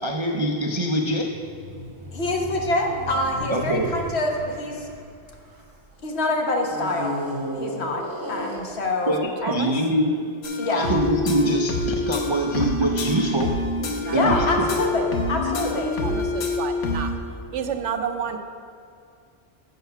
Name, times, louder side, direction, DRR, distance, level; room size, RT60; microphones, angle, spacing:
voice 1, 0.0-1.3 3.5-3.9 9.1-10.1 10.7-13.5 14.1-14.7, right 1 dB, 45° right, 1 dB, 0.4 m, -24 dB
sound 1, 1.2-5.9 6.6-9.2 9.8-10.0, equal, 20° right, 1.0 m, -35 dB
voice 2, 2.1-4.9 6.0-7.2 7.5-8.0 8.3-9.5 10.6-10.9 14.1-16.1, left 2 dB, 65° left, 1 dB, 1.3 m, -25 dB
voice 3, 9.4-9.7 14.0-14.7 15.4-17.1 17.5-18.4, right 7 dB, 80° right, 6 dB, 1.0 m, -31 dB
sound 2, 10.4-17.1, left 2 dB, 90° left, 1.2 m, -26 dB
8.0 x 5.6 x 5.7 m, 2.3 s
omnidirectional pair, 1.2 m